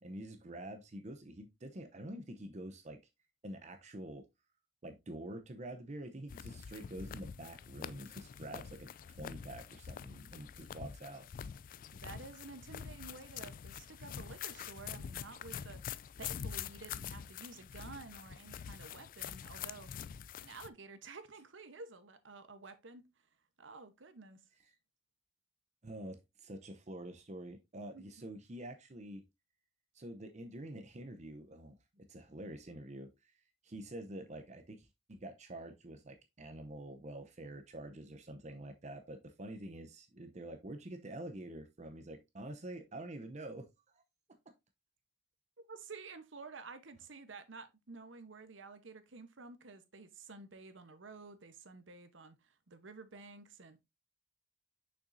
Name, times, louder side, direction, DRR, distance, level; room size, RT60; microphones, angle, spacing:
voice 1, 0.0-3.0 3.4-4.2 4.8-11.3 25.8-29.2 29.9-33.1 33.6-44.0, right 1 dB, 40° right, 0.7 m, -47 dB
sound 1, 6.3-20.7, left 8 dB, 45° left, 0.3 m, -46 dB
voice 2, 11.9-19.9 20.4-23.1 23.6-24.4 27.9-28.0 45.6-53.8, right 3 dB, 80° right, 1.0 m, -51 dB
6.4 x 6.0 x 2.6 m
head